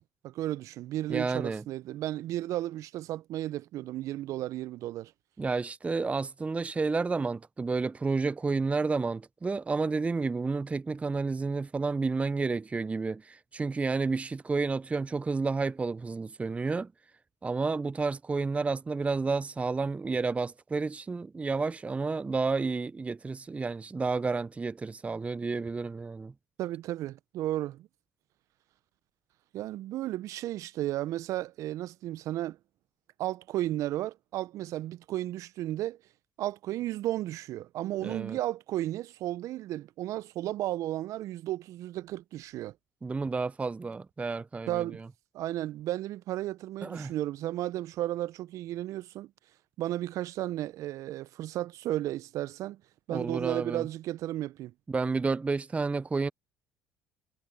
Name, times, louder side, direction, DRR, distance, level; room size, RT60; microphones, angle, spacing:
voice 1, 0.2-5.1 26.6-27.9 29.5-32.6 33.2-36.0 36.4-42.7 44.7-45.0 45.3-49.3 49.8-52.8 53.1-54.7, right 14 dB, 60° right, 1.1 m, -34 dB
voice 2, 1.1-1.6 5.4-16.9 17.4-26.3 38.0-38.4 43.0-45.0 46.8-47.1 53.1-53.9 54.9-56.3, right 4 dB, 20° right, 0.6 m, -31 dB
hypercardioid pair, 60°, 6 cm